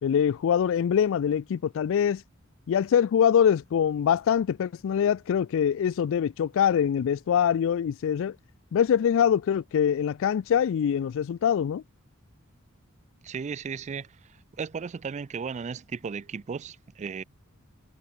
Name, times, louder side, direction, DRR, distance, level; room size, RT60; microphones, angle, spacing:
voice 1, 0.0-2.2 2.7-8.4 8.7-11.8, left 8 dB, 65° left, 0.3 m, -24 dB
voice 2, 13.2-14.2 14.6-17.2, right 6 dB, 35° right, 0.3 m, -35 dB
head